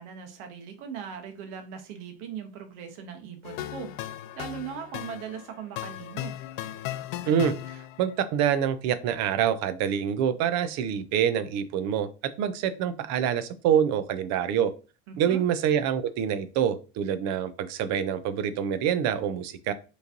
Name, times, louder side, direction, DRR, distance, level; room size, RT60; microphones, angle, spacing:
voice 1, 0.0-3.9 4.3-6.3 15.1-15.5, right 7 dB, 70° right, 5 dB, 1.1 m, -39 dB
sound 1, 3.4-8.1, left 13 dB, 70° left, 0.5 m, -37 dB
voice 2, 7.3-14.7 15.2-19.7, right 9 dB, 45° right, 12 dB, 0.5 m, -26 dB
4.9 x 3.1 x 2.6 m, 0.34 s
supercardioid pair, 145°, 37 cm